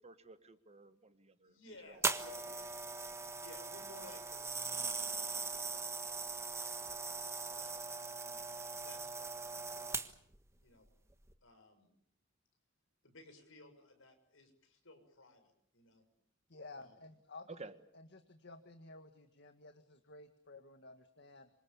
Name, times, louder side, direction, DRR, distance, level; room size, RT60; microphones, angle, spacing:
voice 1, 0.0-2.0 17.5-17.7, right 3 dB, 30° right, 10 dB, 1.5 m, -53 dB
voice 2, 1.4-2.9 3.3-7.1 7.5-8.4 8.8-10.1 10.6-10.9 11.4-11.9 13.0-16.1 16.7-17.0, left 2 dB, 75° left, 7 dB, 6.4 m, -59 dB
sound 1, 2.0-10.4 11.1-11.3, right 4 dB, 15° right, 1.4 m, -40 dB
voice 3, 16.5-17.5 17.9-21.5, left 2 dB, 60° left, 7 dB, 1.9 m, -54 dB
27.0 x 25.5 x 7.1 m, 0.69 s
head